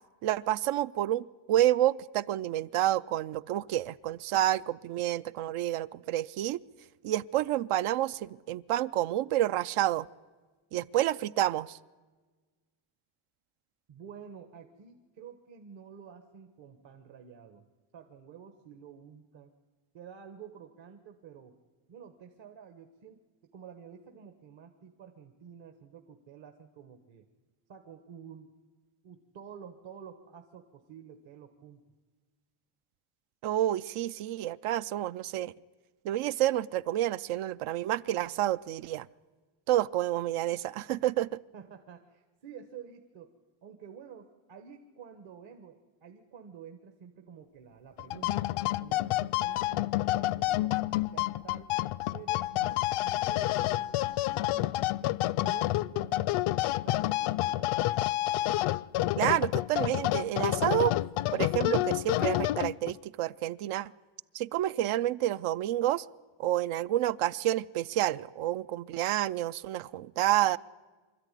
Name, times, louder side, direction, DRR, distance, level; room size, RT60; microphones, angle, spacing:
voice 1, 0.2-6.6 7.0-10.1 10.7-11.8 33.4-35.5 36.0-39.1 39.7-41.4 59.2-61.0 61.3-63.9 64.3-66.1 66.4-70.6, right 13 dB, 80° right, 16 dB, 0.7 m, -29 dB
voice 2, 13.9-17.7 17.9-19.5 19.9-21.5 21.9-27.3 27.7-28.5 29.0-31.8 40.9-41.0 41.5-43.3 43.6-48.4 48.8-51.7 52.1-53.9 54.3-56.3 56.8-57.7 59.4-59.5, right 7 dB, 60° right, 6 dB, 1.5 m, -50 dB
sound 1, 48.0-63.0, left 15 dB, 75° left, 0.6 m, -29 dB
25.0 x 13.5 x 9.9 m, 1.4 s
cardioid pair, 150°, 50 cm